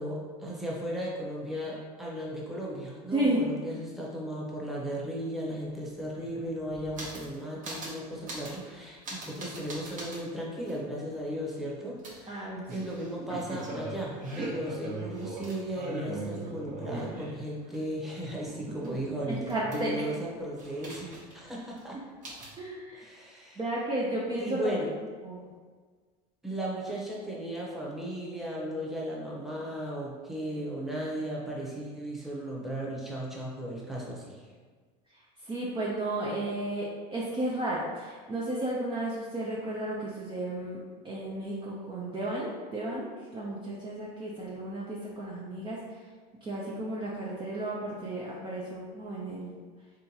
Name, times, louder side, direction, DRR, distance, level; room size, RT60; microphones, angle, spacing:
voice 1, 0.0-22.0 22.9-23.6 24.4-24.9 26.4-34.5, right 1 dB, ahead, -4 dB, 1.0 m, -36 dB
voice 2, 3.1-3.5 12.3-12.9 18.7-18.9 19.3-20.0 22.6-23.0 23.6-24.8 25.2-25.4 35.4-43.1 43.3-45.8 46.4-49.5, right 1 dB, 25° right, -5 dB, 0.7 m, -33 dB
sound 1, 5.7-5.8 6.0-7.4 7.6-8.0 8.3-8.6 9.0-10.2 10.7-10.8 12.0-17.8 18.1-20.1 20.6-21.5 21.7-21.8 22.2-22.6, right 2 dB, 40° right, 1.2 m, -40 dB
3.8 x 3.4 x 2.9 m, 1.5 s
hypercardioid pair, 90°, 20 cm